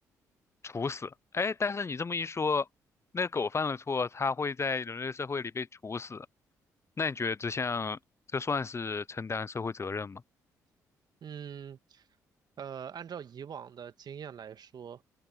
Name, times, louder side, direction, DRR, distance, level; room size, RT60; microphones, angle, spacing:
voice 1, 0.6-2.7 3.1-6.3 7.0-8.0 8.3-10.2, left 4 dB, 35° left, 0.8 m, -32 dB
voice 2, 11.2-12.1 12.6-15.2, right 8 dB, 55° right, 1.8 m, -43 dB
hypercardioid pair, 45°, 8 cm